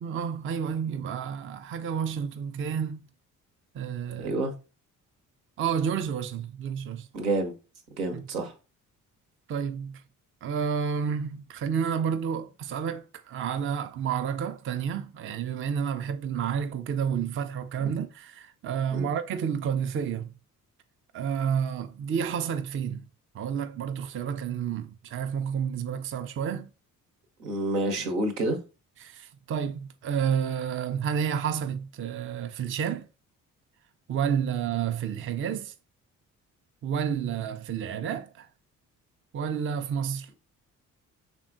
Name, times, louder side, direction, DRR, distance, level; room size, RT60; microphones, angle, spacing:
voice 1, 0.0-3.0 3.7-4.4 5.6-7.1 8.1-8.2 9.5-10.0 10.4-20.3 21.1-23.0 23.3-26.7 29.0-33.1 34.1-35.7 36.8-38.5 39.3-40.3, right 7 dB, 30° right, 0.5 m, -30 dB
voice 2, 4.2-4.5 7.1-7.5 8.0-8.5 17.8-17.9 18.9-19.1 27.4-28.6, right 2 dB, 75° right, 0.9 m, -28 dB
5.7 x 3.5 x 2.5 m
figure-of-eight pair, 40°, 43 cm